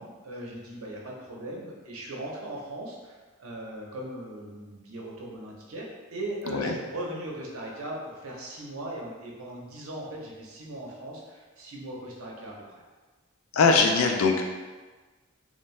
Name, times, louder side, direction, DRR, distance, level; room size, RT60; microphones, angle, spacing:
voice 1, 0.0-12.8 13.9-14.1, right 1 dB, 85° right, -2 dB, 0.6 m, -39 dB
voice 2, 13.5-14.4, left 4 dB, 85° left, 3 dB, 0.4 m, -21 dB
2.6 x 2.1 x 3.1 m, 1.3 s
head